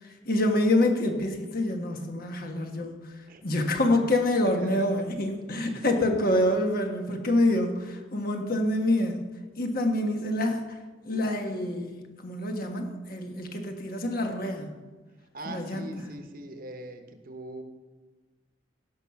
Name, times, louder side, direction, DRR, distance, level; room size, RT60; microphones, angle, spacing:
voice 1, 0.2-3.0 3.4-9.2 9.6-10.6 11.0-14.7 15.5-15.9, left 1 dB, 50° left, 4 dB, 1.3 m, -26 dB
voice 2, 4.4-5.0 5.6-5.8 15.3-17.6, right 1 dB, 50° right, 6 dB, 1.0 m, -41 dB
16.0 x 5.7 x 5.8 m, 1.3 s
head